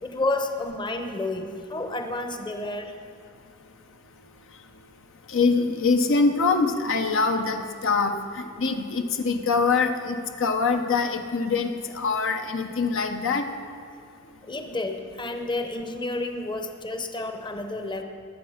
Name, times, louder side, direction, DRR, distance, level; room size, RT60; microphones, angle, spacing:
voice 1, 0.0-2.9 14.4-18.0, left 2 dB, 20° left, 5 dB, 0.9 m, -30 dB
voice 2, 5.3-13.5, left 4 dB, 65° left, 5 dB, 0.9 m, -24 dB
20.0 x 7.6 x 5.7 m, 2.6 s
head